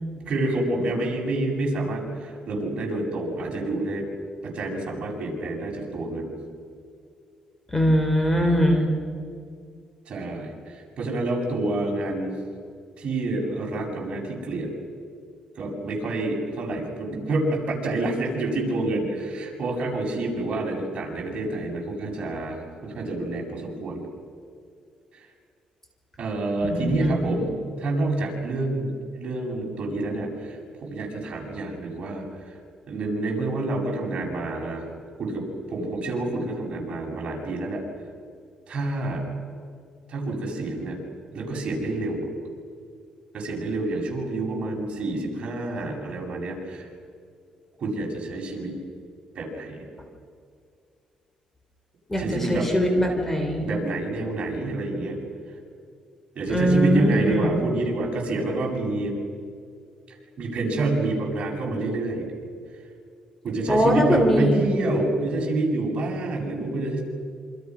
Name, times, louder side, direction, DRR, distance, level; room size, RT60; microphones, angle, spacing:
voice 1, 0.1-4.1 4.4-6.4 8.3-8.9 10.1-12.3 13.0-14.7 15.6-24.0 26.2-27.5 27.8-28.9 29.2-32.5 32.9-34.9 35.2-37.8 38.7-39.2 40.1-41.0 41.3-42.3 43.3-46.9 47.8-48.8 49.3-49.9 52.2-52.7 53.6-55.2 56.3-59.1 60.1-62.3 63.4-67.0, right 2 dB, 50° right, -1 dB, 7.9 m, -28 dB
voice 2, 7.7-8.9 26.6-27.2 52.1-53.7 56.5-57.5 63.7-64.6, equal, 15° left, 4 dB, 3.9 m, -21 dB
27.5 x 26.5 x 6.4 m, 2.2 s
cardioid pair, 105°, 2 cm